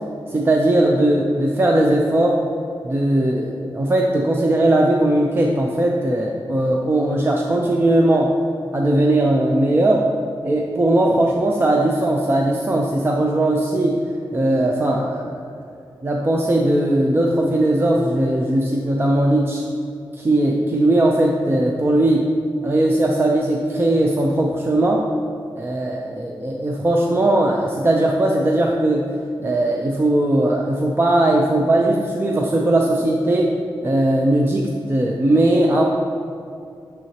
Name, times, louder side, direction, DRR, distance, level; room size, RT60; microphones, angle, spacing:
voice 1, 0.3-2.4 2.8-8.3 8.7-10.0 10.4-14.0 14.3-15.5 16.0-19.6 20.1-22.3 22.6-25.0 25.6-29.2 29.4-33.5 33.8-35.8, right 1 dB, 25° right, 0 dB, 0.6 m, -18 dB
9.3 x 6.9 x 2.9 m, 2.5 s
wide cardioid pair, 120°, 9 cm